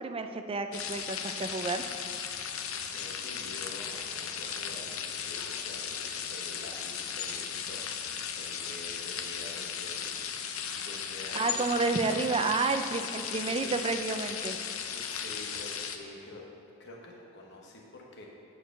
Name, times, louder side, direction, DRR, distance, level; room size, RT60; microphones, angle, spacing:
voice 1, 0.0-1.9 11.3-14.6, right 3 dB, 25° right, 7 dB, 0.4 m, -30 dB
sound 1, 0.7-16.0, left 7 dB, 90° left, 0.6 m, -36 dB
voice 2, 2.9-10.3 10.8-11.7 13.4-13.7 14.9-16.4 16.8-18.2, left 2 dB, 55° left, -1 dB, 1.0 m, -47 dB
9.1 x 4.7 x 6.6 m, 2.8 s
head